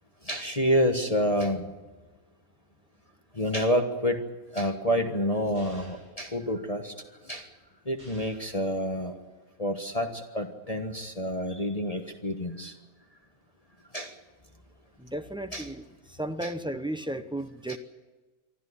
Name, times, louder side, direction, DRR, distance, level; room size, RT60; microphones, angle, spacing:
voice 1, 0.3-1.7 3.3-4.2 4.5-6.9 7.2-7.5 7.9-9.1 9.6-12.7 13.9-14.1 15.5-15.7 16.4-16.5 17.7-17.8, equal, 25° left, 4 dB, 1.4 m, -28 dB
sound 1, 5.5-6.2 8.0-8.6, right 1 dB, 80° right, 8.5 m, -50 dB
voice 2, 15.0-17.8, right 1 dB, 5° right, 8 dB, 0.4 m, -34 dB
24.5 x 13.5 x 9.9 m, 1.3 s
omnidirectional pair, 1.7 m